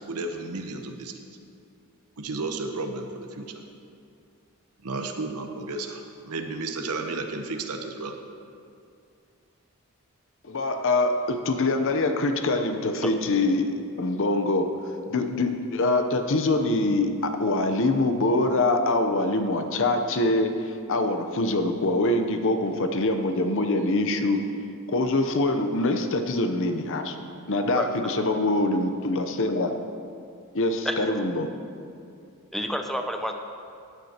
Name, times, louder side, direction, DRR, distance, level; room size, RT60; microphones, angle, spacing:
voice 1, 0.1-1.2 2.2-3.6 4.8-8.1, right 3 dB, 90° right, 5 dB, 0.9 m, -33 dB
voice 2, 10.4-14.7 15.1-24.5 24.9-27.1 27.5-29.7 30.5-31.5, left 2 dB, 60° left, 7 dB, 0.8 m, -24 dB
voice 3, 32.5-33.3, equal, ahead, 4 dB, 0.6 m, -29 dB
15.5 x 9.7 x 2.9 m, 2.4 s
head